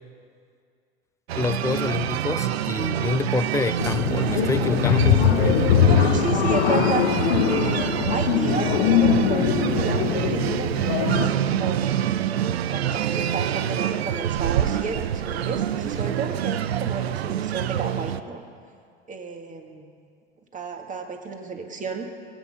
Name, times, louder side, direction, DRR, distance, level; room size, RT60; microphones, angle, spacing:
voice 1, 1.3-5.8, left 4 dB, 10° left, 0.5 m, -27 dB
sound 1, 1.3-18.2, right 10 dB, 80° right, 0.6 m, -26 dB
sound 2, 3.8-11.3, left 9 dB, 70° left, 1.1 m, -21 dB
voice 2, 5.8-7.1 7.5-12.0 12.7-18.4 19.1-19.9 20.5-22.1, right 4 dB, 25° right, 2.0 m, -32 dB
21.0 x 9.0 x 6.8 m
hypercardioid pair, 85°, 31 cm